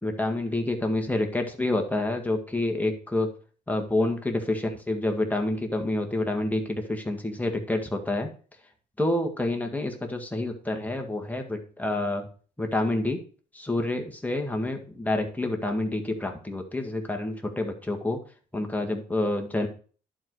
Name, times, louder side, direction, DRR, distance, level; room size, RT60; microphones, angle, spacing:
voice 1, 0.0-3.3 3.7-8.3 9.0-12.3 12.6-13.2 13.5-18.2 18.5-19.7, left 2 dB, 10° left, 3 dB, 1.8 m, -28 dB
11.0 x 4.8 x 4.8 m, 0.40 s
cardioid pair, 90°, 20 cm